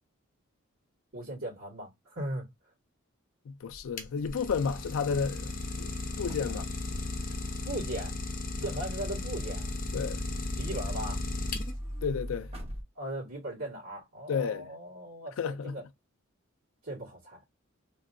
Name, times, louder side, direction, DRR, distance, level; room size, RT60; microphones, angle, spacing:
voice 1, 1.1-2.4 6.5-6.6 7.6-8.1 8.6-9.7 10.6-11.2 12.9-15.8 16.8-17.4, right 1 dB, 75° right, 1.8 m, -38 dB
voice 2, 3.5-5.5 5.8-5.9 6.2-6.7 9.9-10.2 12.0-12.5 14.3-14.7 15.4-15.8, left 6 dB, 75° left, 0.4 m, -31 dB
Idling, 3.7-12.0, left 3 dB, 40° left, 0.7 m, -36 dB
sound 1, 4.4-12.8, equal, 30° right, 1.1 m, -41 dB
3.2 x 2.6 x 2.5 m
head